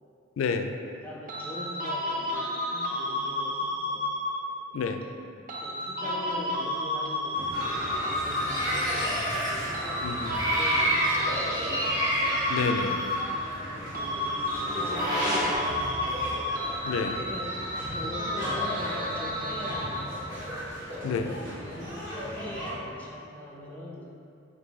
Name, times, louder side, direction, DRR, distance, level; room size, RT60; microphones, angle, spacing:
voice 1, 0.4-0.7 4.7-5.0 10.0-10.3 12.5-13.0 16.8-17.2 21.0-21.3, left 5 dB, 80° left, 7 dB, 0.3 m, -29 dB
voice 2, 0.9-4.0 5.6-11.9 13.8-16.3 17.2-17.6 17.9-20.4 20.8-24.1, left 1 dB, 10° left, -5 dB, 0.5 m, -42 dB
sound 1, 1.3-4.6 5.5-9.3 9.7-13.7 13.9-20.3, left 1 dB, 45° right, 0.5 m, -32 dB
sound 2, 7.3-22.7, right 1 dB, 65° right, 1.3 m, -35 dB
sound 3, 7.5-15.6, right 1 dB, 20° right, 0.9 m, -32 dB
5.9 x 2.6 x 3.1 m, 2.4 s
head